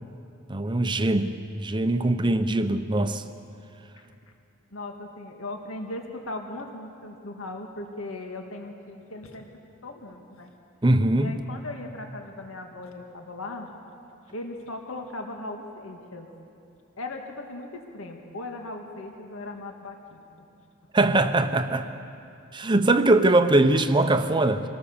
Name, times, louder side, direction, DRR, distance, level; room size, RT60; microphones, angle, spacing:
voice 1, 0.5-3.2 10.8-11.4 20.9-21.9 22.5-24.6, right 2 dB, 20° right, 0.7 m, -22 dB
voice 2, 4.7-9.5 9.8-10.5 11.2-13.7 14.3-16.3 17.0-20.5 21.4-21.6, left 2 dB, 80° left, 1.9 m, -38 dB
26.5 x 18.5 x 7.1 m
head